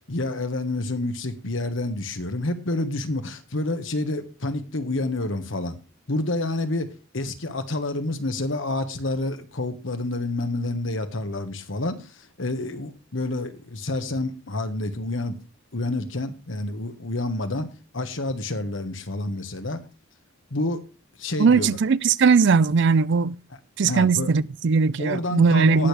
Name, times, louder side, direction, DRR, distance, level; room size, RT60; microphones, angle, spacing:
voice 1, 0.1-5.8 6.1-15.4 15.7-19.8 20.5-20.8 21.2-21.8 23.9-24.3 25.0-25.9, left 2 dB, 70° left, 1.4 m, -28 dB
voice 2, 21.4-23.3 23.8-25.9, right 5 dB, 60° right, 0.4 m, -19 dB
19.0 x 6.5 x 3.4 m
head